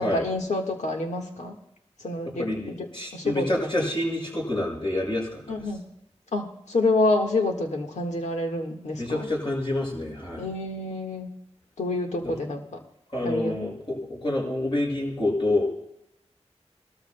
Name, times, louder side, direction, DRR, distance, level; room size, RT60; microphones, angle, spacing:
voice 1, 0.0-1.5 2.0-2.9 3.1-3.5 3.7-3.8 5.5-5.8 6.3-9.3 10.4-11.3 11.8-12.6 13.2-13.6, left 2 dB, 90° left, 2 dB, 1.6 m, -27 dB
voice 2, 2.4-5.6 9.0-10.5 12.2-12.3 13.1-15.7, left 1 dB, 45° left, -2 dB, 6.0 m, -28 dB
21.0 x 13.0 x 2.2 m, 0.81 s
wide cardioid pair, 55°, 11 cm